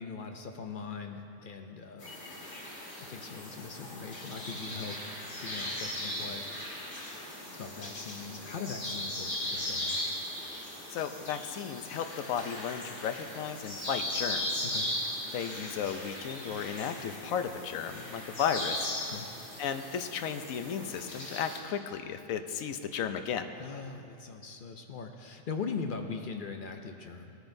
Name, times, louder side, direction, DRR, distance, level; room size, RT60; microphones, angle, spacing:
voice 1, 0.0-2.1 3.0-5.0 5.4-6.4 7.6-10.0 14.6-14.9 19.1-19.3 23.6-27.4, left 5 dB, 55° left, 5 dB, 0.6 m, -40 dB
sound 1, 2.0-21.6, left 1 dB, 40° left, 1.8 m, -38 dB
voice 2, 10.9-14.6 15.3-18.9 19.6-23.5, left 7 dB, 85° left, 8 dB, 1.0 m, -34 dB
18.0 x 9.5 x 2.6 m, 2.7 s
omnidirectional pair, 1.4 m